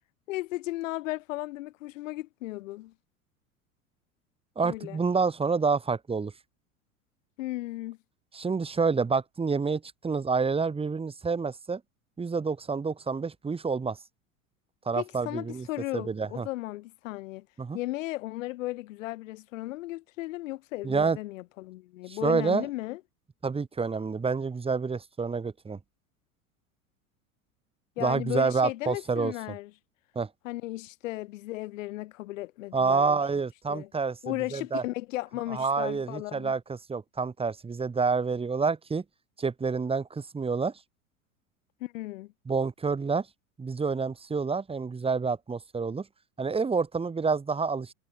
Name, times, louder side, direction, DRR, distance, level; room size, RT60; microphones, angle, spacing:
voice 1, 0.3-2.9 4.6-5.0 7.4-8.0 14.9-17.5 17.7-23.0 28.0-29.7 30.4-33.2 33.7-33.9 34.2-36.5 41.8-42.3, left 18 dB, 65° left, 5.2 m, -35 dB
voice 2, 4.6-6.3 8.3-11.8 12.2-14.0 14.8-15.7 15.9-16.5 17.6-17.8 20.8-21.2 22.1-22.7 23.4-25.8 28.0-29.3 30.1-30.3 32.7-34.8 35.5-39.0 39.4-40.7 42.5-43.3 43.6-46.0 46.4-47.9, right 4 dB, 15° right, 1.4 m, -28 dB
figure-of-eight pair, 85°, 42 cm